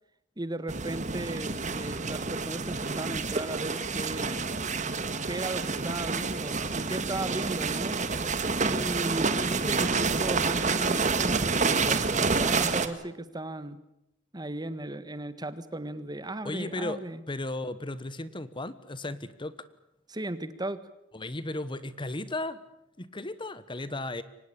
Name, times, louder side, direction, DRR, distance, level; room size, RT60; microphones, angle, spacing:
voice 1, 0.4-4.4 5.3-8.0 8.6-13.8 14.3-17.2 20.1-20.8, right 1 dB, 20° right, 13 dB, 1.5 m, -36 dB
sound 1, 0.7-12.9, right 4 dB, 40° right, 1.7 m, -28 dB
voice 2, 16.4-17.0 17.3-19.6 21.1-22.6 23.0-24.2, left 2 dB, 25° left, 15 dB, 1.2 m, -35 dB
24.5 x 19.0 x 9.9 m, 0.85 s
head